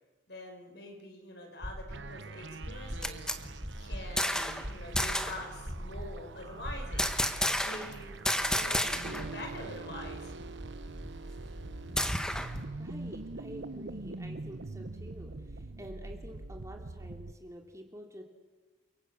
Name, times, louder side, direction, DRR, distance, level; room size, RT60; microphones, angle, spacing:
voice 1, 0.3-3.3 3.8-7.1 7.6-8.2 8.5-10.3, left 1 dB, 60° left, 3 dB, 5.6 m, -45 dB
sound 1, 1.6-2.2 2.6-7.2, equal, 40° right, 3.5 m, -40 dB
sound 2, 1.9-17.3, right 2 dB, 70° right, 0.9 m, -43 dB
sound 3, 2.7-4.7 5.0-5.5 7.0-8.0 8.3-9.3 9.6-9.7 10.0-12.6, left 1 dB, 5° left, 1.4 m, -32 dB
voice 2, 12.8-18.2, equal, 15° right, 2 dB, 2.9 m, -48 dB
30.0 x 23.5 x 8.5 m, 1.3 s
head